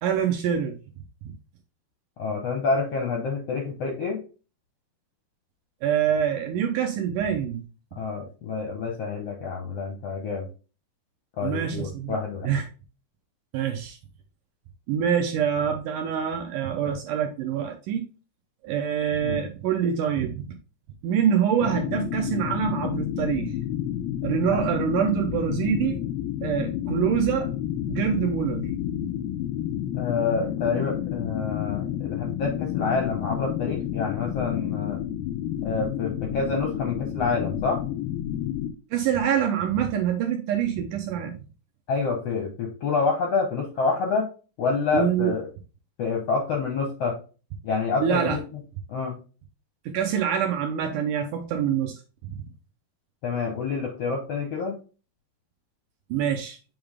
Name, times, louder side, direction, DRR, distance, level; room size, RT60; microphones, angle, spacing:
voice 1, 0.0-0.8 5.8-7.6 11.4-12.2 12.4-12.6 13.5-14.0 14.9-18.1 18.6-20.4 21.0-23.5 24.2-26.0 26.4-27.5 27.9-28.7 38.9-41.4 44.9-45.3 48.0-48.4 49.9-52.0 52.3-52.4 56.1-56.6, right 8 dB, 75° right, 4 dB, 2.0 m, -25 dB
voice 2, 2.2-4.2 8.0-10.5 11.4-12.5 19.2-19.5 24.5-24.6 29.9-35.0 35.6-37.8 41.9-44.3 44.6-45.5 46.0-47.2 47.6-48.6 48.9-49.2 53.2-54.8, left 4 dB, 70° left, 3 dB, 1.5 m, -28 dB
sound 1, 21.6-38.7, left 11 dB, 90° left, 2.5 m, -30 dB
7.9 x 3.7 x 3.4 m, 0.34 s
omnidirectional pair, 4.3 m